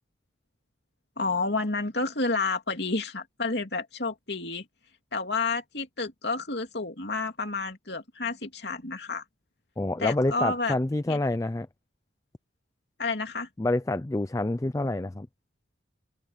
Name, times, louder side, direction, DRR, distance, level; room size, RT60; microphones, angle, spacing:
voice 1, 1.2-4.6 5.1-9.2 10.0-10.8 11.1-11.2 13.0-13.5, left 3 dB, 65° left, 2.9 m, -30 dB
voice 2, 9.8-11.7 13.6-15.3, left 2 dB, 15° left, 0.4 m, -27 dB
open air
head